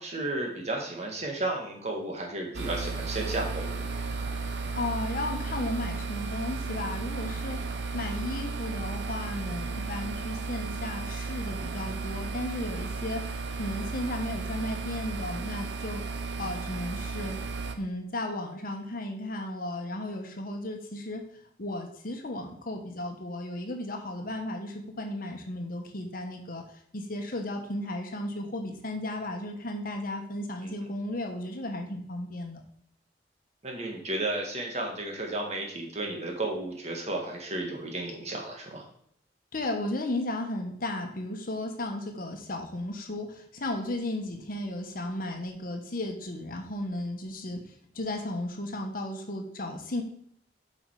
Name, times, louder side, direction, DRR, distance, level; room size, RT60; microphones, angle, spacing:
voice 1, 0.0-3.9 30.6-30.7 33.6-38.9, right 2 dB, 40° right, 1 dB, 1.9 m, -33 dB
sound 1, 2.5-17.7, right 4 dB, 75° right, 0.9 m, -34 dB
voice 2, 4.8-7.6 7.9-13.2 13.5-16.0 16.4-17.4 17.8-21.2 21.6-26.6 26.9-32.6 39.5-50.0, left 1 dB, 50° left, 4 dB, 1.3 m, -34 dB
8.3 x 5.5 x 4.9 m, 0.69 s
head